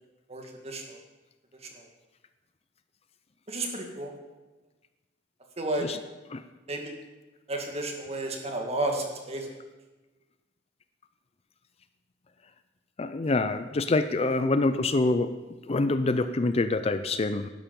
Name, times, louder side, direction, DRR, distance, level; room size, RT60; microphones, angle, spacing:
voice 1, 0.3-1.0 1.8-1.9 3.5-4.1 5.6-5.9 6.7-6.9 7.5-9.5, right 2 dB, 35° right, 2 dB, 2.0 m, -32 dB
voice 2, 13.0-15.3 15.7-17.5, left 2 dB, 35° left, 11 dB, 0.5 m, -25 dB
11.5 x 11.5 x 5.3 m, 1.2 s
head